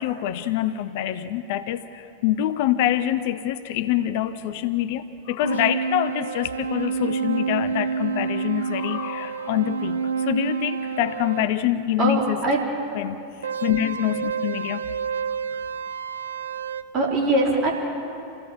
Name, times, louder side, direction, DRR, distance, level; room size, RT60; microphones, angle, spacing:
voice 1, 0.0-12.4 12.9-14.9, left 12 dB, 50° left, 12 dB, 0.8 m, -25 dB
sound 1, 5.4-11.5 13.4-16.8, right 6 dB, 70° right, 0.7 m, -28 dB
voice 2, 12.0-12.6 16.9-17.7, right 2 dB, 30° right, -2 dB, 4.5 m, -21 dB
27.5 x 16.0 x 7.2 m, 2.7 s
figure-of-eight pair, 90°, 0 cm